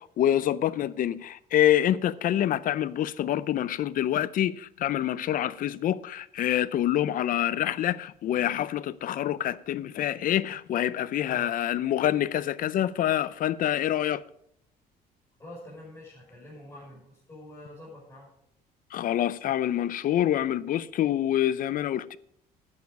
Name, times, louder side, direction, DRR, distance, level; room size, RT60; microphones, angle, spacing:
voice 1, 0.0-14.2 18.9-22.2, left 11 dB, 55° left, 0.5 m, -26 dB
voice 2, 15.4-18.3, left 1 dB, 20° left, 5.6 m, -46 dB
11.0 x 9.4 x 5.1 m
cardioid pair, 110°, 17 cm